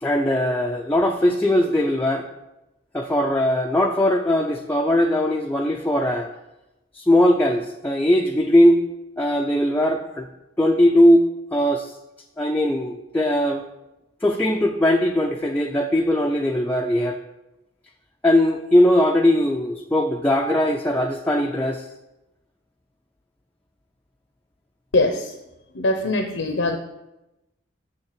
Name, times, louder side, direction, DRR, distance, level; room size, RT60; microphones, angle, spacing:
voice 1, 0.0-2.3 2.9-6.3 6.9-8.8 9.2-10.3 10.6-11.9 12.4-13.7 14.2-17.2 18.2-21.9, left 1 dB, 10° left, 0 dB, 0.5 m, -19 dB
voice 2, 24.9-25.3 25.7-26.8, left 2 dB, 80° left, 4 dB, 0.9 m, -22 dB
7.2 x 7.1 x 6.6 m, 0.95 s
head